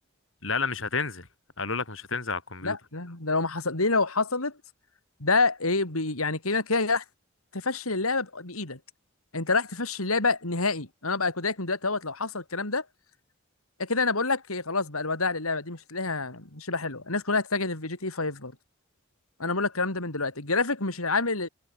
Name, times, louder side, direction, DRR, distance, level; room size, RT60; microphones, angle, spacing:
voice 1, 0.4-1.3 1.6-2.7, left 4 dB, 65° left, 4.7 m, -30 dB
voice 2, 2.6-4.6 5.2-7.0 7.5-8.8 9.3-12.9 13.8-18.5 19.4-21.5, left 3 dB, 90° left, 4.2 m, -27 dB
head